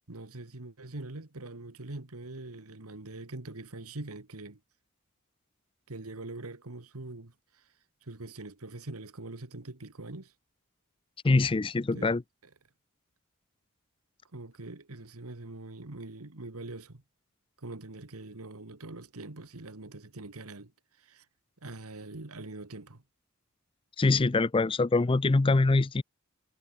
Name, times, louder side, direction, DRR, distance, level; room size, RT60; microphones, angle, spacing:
voice 1, 0.1-4.6 5.9-7.6 8.0-10.3 11.9-12.2 14.3-17.0 17.6-20.7 21.0-21.2 21.6-23.0, right 2 dB, 75° right, 1.7 m, -43 dB
voice 2, 11.2-12.2 24.0-26.0, left 3 dB, 25° left, 0.4 m, -24 dB
head